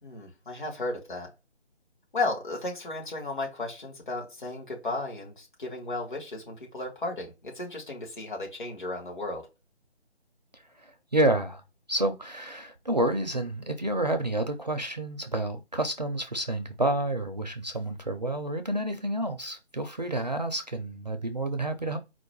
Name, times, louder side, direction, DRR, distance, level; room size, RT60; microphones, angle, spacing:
voice 1, 0.0-1.3 2.1-9.5, left 2 dB, 45° left, 1.5 m, -34 dB
voice 2, 11.1-11.6 11.9-22.0, right 1 dB, 40° right, 0.4 m, -29 dB
4.5 x 2.1 x 4.4 m
figure-of-eight pair, 150°, 34 cm